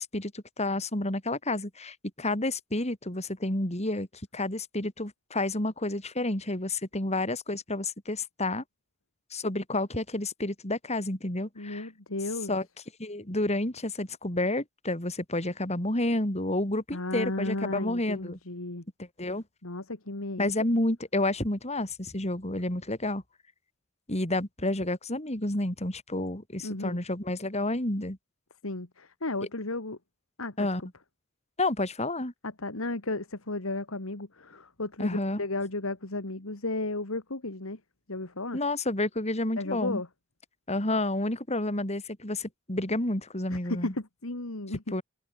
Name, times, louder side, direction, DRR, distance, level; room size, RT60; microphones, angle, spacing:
voice 1, 0.0-4.1 4.3-8.6 9.3-11.9 12.5-12.6 13.0-18.4 19.0-19.4 20.4-23.2 24.1-28.2 30.6-30.8 31.6-32.3 35.0-35.4 38.5-40.0 40.7-43.9 44.9-45.0, left 2 dB, 30° left, 4.4 m, -30 dB
voice 2, 11.6-12.5 16.9-18.8 19.6-20.7 26.6-27.0 28.6-30.0 30.4-30.7 32.4-37.8 38.1-38.6 39.6-40.1 43.5-45.0, left 2 dB, 90° left, 2.5 m, -34 dB
head